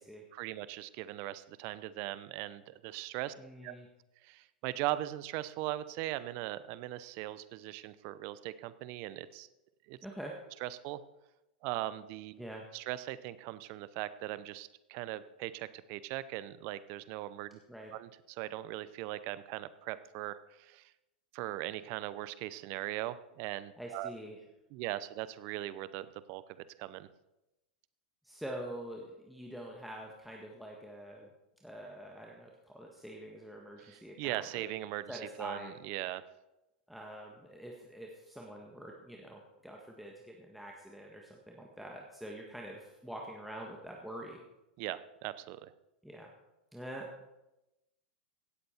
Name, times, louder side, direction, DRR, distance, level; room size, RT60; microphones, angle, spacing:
voice 1, 0.3-3.3 3.6-3.8 4.2-9.5 9.9-10.0 10.6-11.0 11.6-12.3 12.7-17.6 17.9-20.9 21.3-24.1 24.7-27.1 33.8-36.2 44.8-45.7, right 15 dB, 50° right, 15 dB, 0.7 m, -39 dB
voice 2, 3.4-3.9 10.0-10.3 12.4-12.6 17.7-17.9 23.8-24.4 28.2-31.3 31.6-34.7 35.1-35.7 36.9-44.4 46.0-46.3 46.7-47.3, right 1 dB, ahead, -1 dB, 1.6 m, -45 dB
16.5 x 7.9 x 4.4 m, 0.96 s
hypercardioid pair, 105°, 5 cm